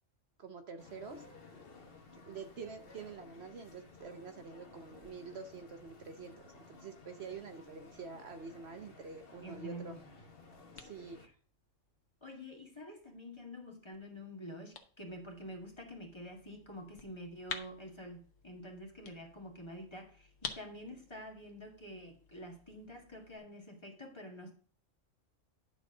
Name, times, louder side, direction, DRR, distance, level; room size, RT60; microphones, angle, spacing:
voice 1, 0.4-1.2 2.3-9.9 10.8-11.2, right 5 dB, 60° right, 1.0 m, -47 dB
sound 1, 0.8-11.3, left 3 dB, 50° left, 1.4 m, -56 dB
voice 2, 9.4-9.9 11.2-11.3 12.2-24.5, equal, 20° left, 2.0 m, -48 dB
sound 2, 9.9-23.4, left 6 dB, 75° left, 1.4 m, -52 dB
10.5 x 4.0 x 6.4 m
omnidirectional pair, 1.3 m